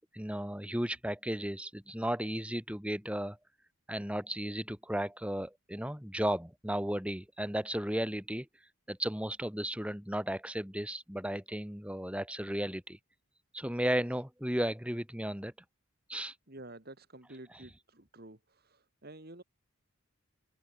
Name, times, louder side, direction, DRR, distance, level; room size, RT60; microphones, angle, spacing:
voice 1, 0.0-3.4 3.9-8.5 8.9-13.0 13.5-15.5 16.1-16.3 17.5-17.7, equal, 5° right, 3.7 m, -34 dB
voice 2, 16.5-18.4 18.6-19.4, right 1 dB, 45° right, 2.4 m, -50 dB
open air
head